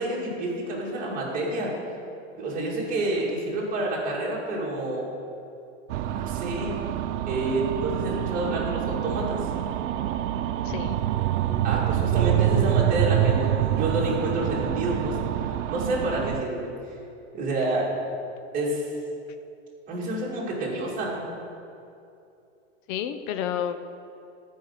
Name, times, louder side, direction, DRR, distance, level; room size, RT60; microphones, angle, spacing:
voice 1, 0.0-1.7 2.4-5.1 6.2-6.7 7.3-9.5 10.6-10.7 11.6-15.2 15.4-16.7 17.3-17.9 18.5-18.8 19.9-21.3, right 1 dB, 20° right, -6 dB, 2.4 m, -28 dB
sound 1, 5.9-16.4, right 12 dB, 70° right, 0.6 m, -26 dB
voice 2, 10.6-11.0 16.1-16.3 22.9-23.8, left 9 dB, 40° left, 9 dB, 0.7 m, -30 dB
13.5 x 4.7 x 5.9 m, 2.7 s
hypercardioid pair, 135°, 39 cm